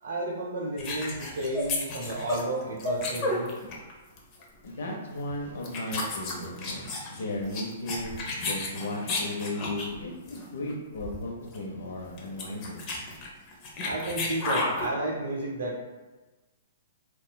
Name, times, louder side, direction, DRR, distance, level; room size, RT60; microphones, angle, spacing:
voice 1, 0.0-3.5 13.8-15.8, right 1 dB, 75° right, -3 dB, 0.6 m, -32 dB
sound 1, 0.8-3.9 4.2-4.4 5.2-5.3 5.6-10.0 10.3-10.5 10.7-10.8 11.0-11.2 11.5-11.6 12.1-14.9, left 2 dB, 30° left, 0.6 m, -32 dB
voice 2, 4.6-8.1 8.4-12.8, left 1 dB, 75° left, 0 dB, 0.7 m, -35 dB
3.8 x 2.3 x 2.2 m, 1.2 s
hypercardioid pair, 150°, 0 cm